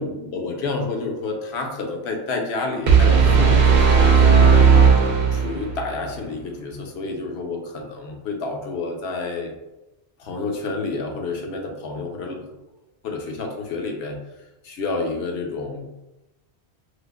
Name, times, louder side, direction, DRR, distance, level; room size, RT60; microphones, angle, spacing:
voice 1, 0.0-4.7 5.3-9.6 10.2-12.5 13.0-14.2 14.6-15.8, left 3 dB, 75° left, 2 dB, 0.9 m, -29 dB
sound 1, 2.9-5.8, right 6 dB, 55° right, 0.5 m, -15 dB
4.8 x 2.0 x 2.3 m, 0.97 s
omnidirectional pair, 1.1 m